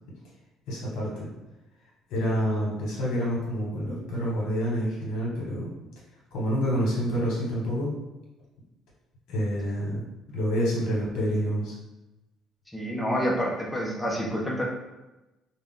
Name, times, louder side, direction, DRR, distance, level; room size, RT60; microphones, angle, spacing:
voice 1, 0.7-1.3 2.1-5.7 6.3-7.9 9.3-10.0 10.3-11.8, equal, 75° left, -4 dB, 1.0 m, -27 dB
voice 2, 12.7-14.6, equal, 5° left, -3 dB, 0.4 m, -28 dB
2.4 x 2.2 x 3.5 m, 1.0 s
cardioid pair, 150°, 0 cm